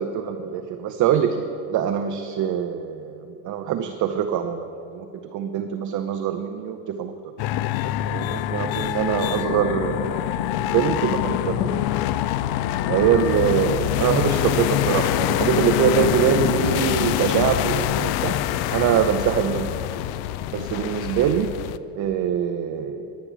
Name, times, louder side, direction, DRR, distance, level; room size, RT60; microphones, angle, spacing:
voice 1, 0.0-7.1 8.1-12.0 12.9-18.3 18.7-19.7 20.5-21.5 22.0-23.1, right 9 dB, 40° right, 7 dB, 0.6 m, -24 dB
sound 1, 7.4-21.8, left 13 dB, 55° left, 0.5 m, -25 dB
10.5 x 9.7 x 6.1 m, 2.8 s
supercardioid pair, 110°, 48 cm